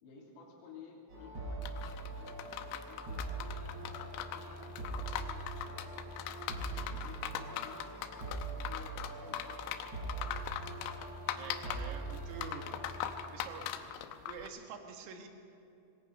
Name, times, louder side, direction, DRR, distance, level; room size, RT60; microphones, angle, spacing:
voice 1, 0.0-6.1 6.6-10.3, left 4 dB, 60° left, -5 dB, 5.0 m, -55 dB
sound 1, 1.1-13.2, right 2 dB, 30° right, 6.9 m, -42 dB
sound 2, 1.6-14.5, left 10 dB, 80° left, 3.4 m, -41 dB
voice 2, 6.5-7.0 11.4-12.7 13.3-13.9 14.3-15.3, right 6 dB, 80° right, 4 dB, 4.2 m, -47 dB
26.0 x 21.0 x 5.4 m, 2.6 s
omnidirectional pair, 6.0 m